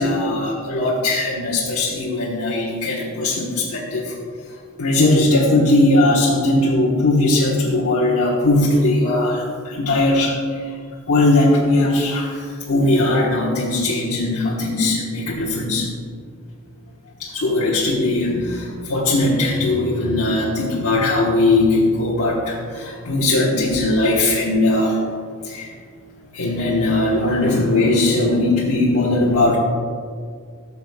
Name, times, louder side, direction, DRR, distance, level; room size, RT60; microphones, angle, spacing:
voice 1, 0.0-4.1 4.8-10.6 11.1-15.9 17.2-25.0 25.4-25.7 26.3-29.6, left 2 dB, 75° left, -7 dB, 1.3 m, -19 dB
15.0 x 7.0 x 2.3 m, 2.1 s
head